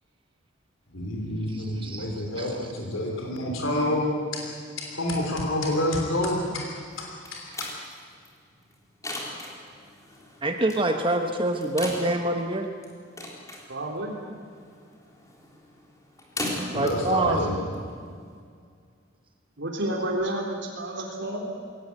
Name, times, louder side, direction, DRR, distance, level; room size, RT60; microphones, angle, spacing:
voice 1, 0.9-7.7 16.7-17.6, left 1 dB, 80° left, 1 dB, 3.3 m, -28 dB
voice 2, 1.5-2.1 2.4-2.5 6.4-6.5 10.4-12.7 16.7-17.4, right 2 dB, 25° right, 5 dB, 1.2 m, -26 dB
sound 1, 6.9-18.4, left 1 dB, 15° left, 3.9 m, -39 dB
voice 3, 13.7-14.2 17.2-17.3 19.6-21.6, right 1 dB, 60° right, 0 dB, 3.6 m, -30 dB
22.0 x 18.0 x 9.5 m, 2.1 s
head